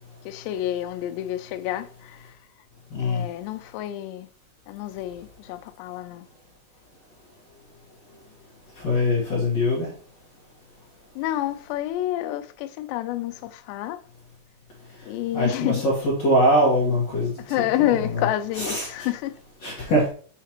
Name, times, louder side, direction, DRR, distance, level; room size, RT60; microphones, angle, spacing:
voice 1, 0.3-2.4 3.0-4.3 4.7-6.3 11.2-14.0 15.1-15.8 17.4-19.4, left 13 dB, 90° left, 2.8 m, -28 dB
voice 2, 2.9-3.2 8.8-9.9 15.3-17.3 17.8-18.3 18.6-18.9 19.6-20.1, equal, 55° left, 2.0 m, -22 dB
7.3 x 5.7 x 3.0 m
omnidirectional pair, 4.8 m